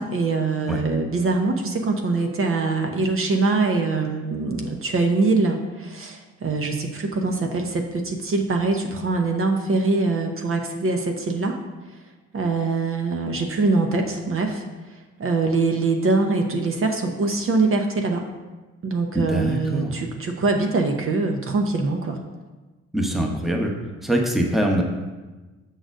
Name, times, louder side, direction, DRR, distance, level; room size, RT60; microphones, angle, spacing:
voice 1, 0.0-11.6 12.3-14.6 14.9-18.2 18.8-22.2, right 3 dB, 45° right, 3 dB, 0.8 m, -23 dB
voice 2, 19.1-20.0 22.9-23.7 24.0-24.8, right 1 dB, ahead, 1 dB, 1.0 m, -23 dB
6.5 x 3.9 x 6.2 m, 1.2 s
cardioid pair, 90°, 30 cm